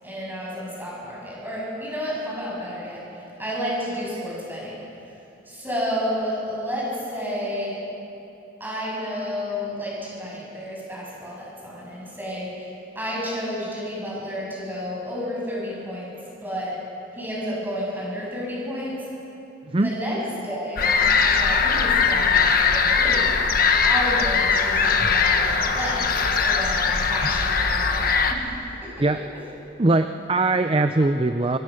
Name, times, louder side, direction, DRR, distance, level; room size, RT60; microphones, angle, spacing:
voice 1, 0.0-4.8 5.4-7.8 8.6-16.1 16.4-16.8 17.1-19.0 19.8-23.3 23.8-26.2 26.4-28.9, equal, 10° right, -5 dB, 7.6 m, -31 dB
sound 1, 20.8-28.3, left 5 dB, 50° left, 1.4 m, -20 dB
voice 2, 29.8-31.6, right 2 dB, 30° right, 8 dB, 0.6 m, -21 dB
25.0 x 23.5 x 6.5 m, 2.9 s
head